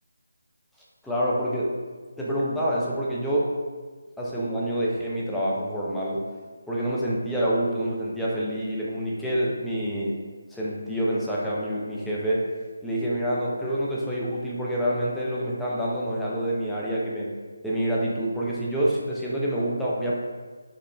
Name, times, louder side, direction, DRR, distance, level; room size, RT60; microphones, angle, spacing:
voice 1, 1.0-1.7 2.2-3.6 4.2-6.3 6.7-10.1 10.5-12.4 12.8-17.3 17.6-20.1, right 1 dB, 5° left, -7 dB, 0.4 m, -27 dB
5.1 x 2.0 x 2.5 m, 1.4 s
figure-of-eight pair, 155°, 0 cm